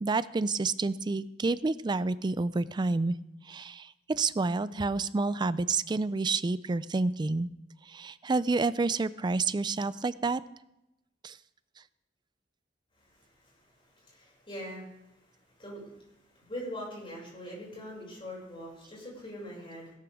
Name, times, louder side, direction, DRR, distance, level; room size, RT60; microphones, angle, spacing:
voice 1, 0.0-3.2 3.5-7.5 7.9-10.4 11.2-11.4, right 3 dB, 25° right, 16 dB, 0.4 m, -29 dB
voice 2, 14.0-14.8 15.6-15.9 16.4-19.9, equal, 30° left, -4 dB, 6.4 m, -42 dB
17.0 x 12.0 x 3.6 m, 0.89 s
head